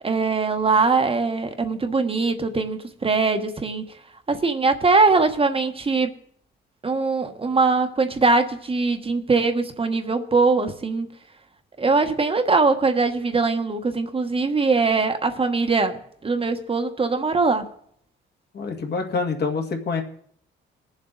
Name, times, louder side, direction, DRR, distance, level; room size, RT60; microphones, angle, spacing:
voice 1, 0.0-3.8 4.3-6.1 6.8-11.1 11.8-17.7, right 4 dB, 30° right, 6 dB, 1.2 m, -21 dB
voice 2, 18.5-20.0, left 4 dB, 55° left, 3 dB, 2.0 m, -26 dB
21.0 x 7.3 x 3.9 m, 0.64 s
cardioid pair, 90°, 20 cm